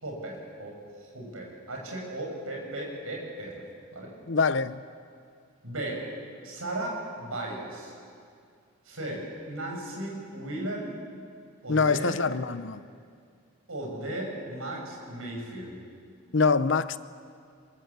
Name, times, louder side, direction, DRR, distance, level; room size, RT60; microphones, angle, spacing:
voice 1, 0.0-3.6 3.9-4.1 5.6-6.0 6.4-7.9 8.8-10.9 11.6-12.2 13.7-15.8, right 1 dB, 80° right, 6.2 m, -36 dB
voice 2, 4.3-4.8 11.7-12.8 16.3-17.0, left 4 dB, 60° left, 0.7 m, -24 dB
22.5 x 22.0 x 8.2 m
head